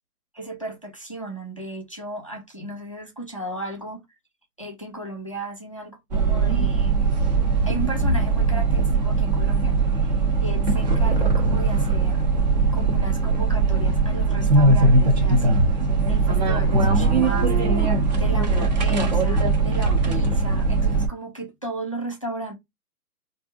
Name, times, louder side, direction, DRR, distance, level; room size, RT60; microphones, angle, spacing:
voice 1, 0.3-4.0 4.6-7.1 7.7-12.2 12.7-15.7 16.1-17.8 18.1-22.5, right 1 dB, 25° left, 0.4 m, -35 dB
sound 1, 6.1-21.1, right 3 dB, 30° right, 0.6 m, -20 dB
4.8 x 2.5 x 2.4 m
hypercardioid pair, 150°, 47 cm